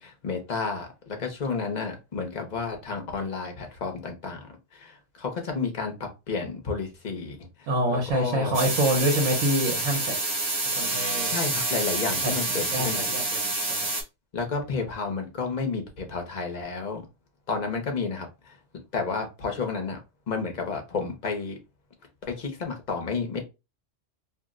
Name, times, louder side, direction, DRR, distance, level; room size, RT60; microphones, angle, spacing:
voice 1, 0.0-8.7 11.3-13.1 14.3-17.0 17.5-18.6 18.9-20.0 20.3-21.6 22.3-23.4, left 4 dB, 40° left, 0.7 m, -31 dB
voice 2, 7.7-10.2 10.8-11.4 12.2-12.3 12.7-13.5 13.8-13.9, right 1 dB, 80° right, 1.2 m, -26 dB
sound 1, 8.5-14.0, right 2 dB, 30° right, 0.5 m, -28 dB
2.6 x 2.0 x 3.6 m
omnidirectional pair, 1.3 m